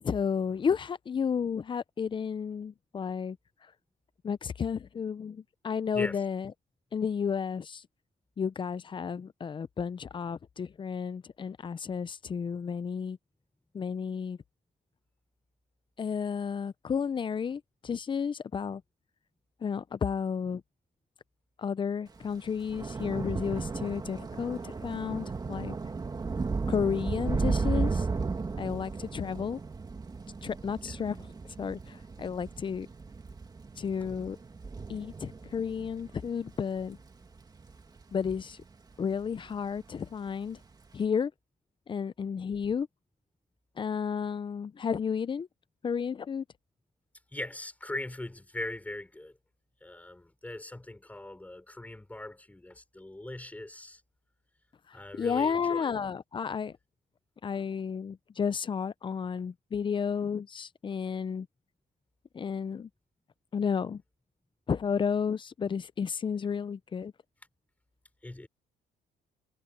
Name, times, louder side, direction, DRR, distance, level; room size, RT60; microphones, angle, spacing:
voice 1, 0.0-3.4 4.2-6.5 6.9-7.8 8.4-13.2 13.7-14.4 16.0-18.8 19.6-20.6 21.6-25.8 26.7-28.1 28.6-29.6 30.4-31.3 31.6-32.9 33.8-34.4 34.9-37.0 38.1-38.6 39.0-40.6 40.9-41.3 41.9-42.9 43.8-45.5 45.8-46.4 54.9-56.8 57.4-61.5 62.3-62.9 63.5-64.0 64.7-67.1, left 6 dB, 30° left, 0.6 m, -32 dB
Thunder / Rain, 22.2-38.8 39.1-39.5 39.8-40.0, right 4 dB, 25° right, 2.3 m, -35 dB
voice 2, 47.3-49.3 49.8-54.0 54.9-55.9 68.2-68.5, left 1 dB, 10° left, 5.3 m, -40 dB
cardioid pair, 110°, 17 cm